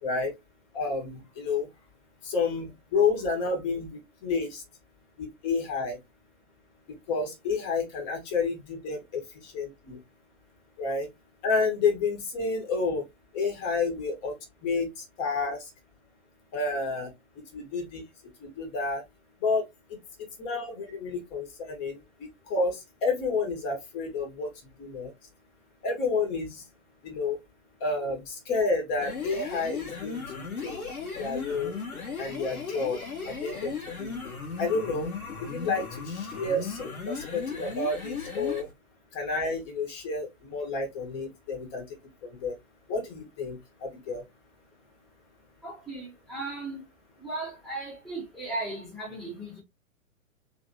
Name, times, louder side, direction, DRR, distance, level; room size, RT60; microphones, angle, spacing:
voice 1, 0.0-0.3 0.7-1.7 2.2-4.6 5.2-6.0 6.9-10.0 10.8-11.1 11.4-13.0 13.3-14.3 14.6-15.7 16.5-17.1 17.5-18.0 18.4-19.0 19.4-22.0 22.5-24.5 24.8-25.1 25.8-26.6 27.0-27.4 27.8-30.2 30.6-30.8 31.2-31.8 32.2-33.0 33.2-34.1 34.6-35.1 35.4-38.7 39.1-42.0 42.2-42.6 42.9-44.2, left 4 dB, 30° left, 1.4 m, -30 dB
sound 1, 28.9-38.7, left 5 dB, 80° left, 1.4 m, -36 dB
voice 2, 45.6-46.8 47.2-49.6, right 2 dB, ahead, 1.1 m, -36 dB
3.4 x 3.2 x 2.7 m
figure-of-eight pair, 115°, 42 cm